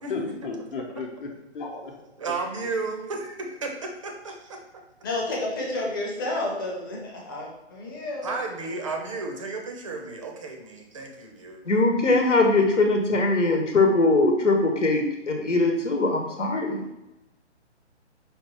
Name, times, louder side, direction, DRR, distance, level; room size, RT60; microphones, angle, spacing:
voice 1, 0.1-1.3 1.5-2.0, left 4 dB, 45° left, 0 dB, 0.9 m, -33 dB
voice 2, 2.2-4.6 8.2-11.8, right 3 dB, 30° right, 3 dB, 0.5 m, -33 dB
voice 3, 5.0-8.4, left 2 dB, 20° left, -2 dB, 0.6 m, -30 dB
voice 4, 11.7-16.8, left 2 dB, 90° left, 2 dB, 1.0 m, -21 dB
5.2 x 2.4 x 4.3 m, 0.94 s
hypercardioid pair, 150°, 35 cm